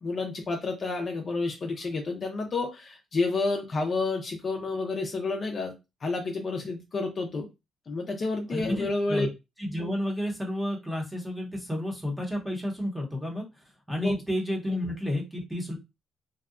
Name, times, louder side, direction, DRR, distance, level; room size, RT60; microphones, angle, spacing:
voice 1, 0.0-5.7 6.0-7.5 7.9-9.3 14.0-14.1, left 3 dB, 40° left, 3 dB, 0.5 m, -30 dB
voice 2, 8.5-9.3 9.6-13.5 13.9-15.8, left 1 dB, 5° right, -1 dB, 0.8 m, -31 dB
2.7 x 2.1 x 2.5 m, 0.24 s
cardioid pair, 135°, 0 cm